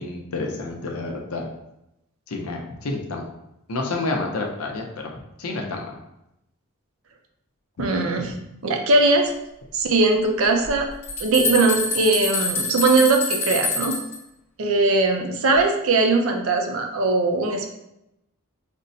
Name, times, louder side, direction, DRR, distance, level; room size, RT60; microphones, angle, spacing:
voice 1, 0.0-1.5 2.3-3.2 3.7-5.1 5.4-6.0, left 2 dB, 85° left, 1 dB, 0.6 m, -29 dB
voice 2, 7.8-8.3 8.6-9.3 9.7-10.9 11.2-14.0 14.6-17.7, right 3 dB, 70° right, 3 dB, 0.5 m, -20 dB
sound 1, 10.6-14.2, left 3 dB, 10° left, 0.8 m, -26 dB
5.1 x 2.1 x 2.6 m, 0.86 s
head